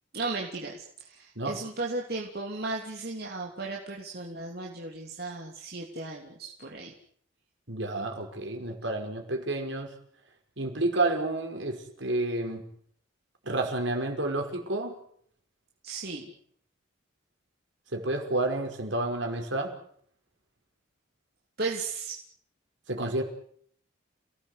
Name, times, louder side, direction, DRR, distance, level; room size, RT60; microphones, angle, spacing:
voice 1, 0.1-6.9 15.8-16.3 21.6-22.2, right 3 dB, 50° right, -1 dB, 3.2 m, -35 dB
voice 2, 7.7-9.9 10.6-12.6 13.5-15.0 17.9-19.7 22.9-23.2, right 2 dB, 70° right, 4 dB, 5.7 m, -30 dB
29.5 x 18.5 x 8.3 m, 0.63 s
head